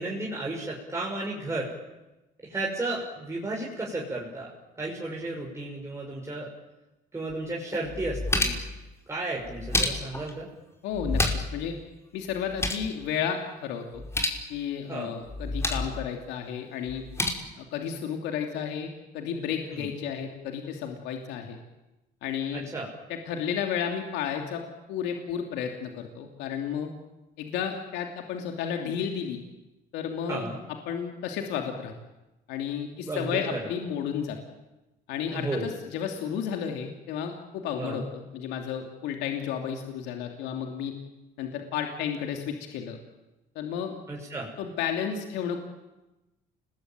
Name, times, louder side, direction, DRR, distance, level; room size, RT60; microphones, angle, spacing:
voice 1, 0.0-1.7 2.4-4.5 4.8-6.5 7.1-8.6 9.1-10.5 14.9-15.1 19.8-19.9 22.5-22.9 30.3-30.6 32.9-33.7 35.3-35.7 37.8-38.1 44.1-44.5, right 2 dB, 15° right, -3 dB, 6.1 m, -33 dB
sound 1, 7.3-7.4 7.9-8.8 9.4-10.3 10.9-11.6 11.9-12.0 12.3-12.9 13.9-14.4 15.3-15.9 16.9-17.3, left 2 dB, 15° left, 5.0 m, -29 dB
voice 2, 10.8-11.2 11.5-11.7 12.1-14.0 14.5-17.0 17.6-21.6 22.2-22.7 23.1-24.6 24.9-26.9 27.4-29.4 29.9-30.4 30.9-31.9 32.5-34.4 35.1-40.9 41.4-43.0 43.5-44.0 44.6-45.6, left 8 dB, 90° left, 3 dB, 3.0 m, -32 dB
29.5 x 21.0 x 9.2 m, 1.0 s
cardioid pair, 110°, 17 cm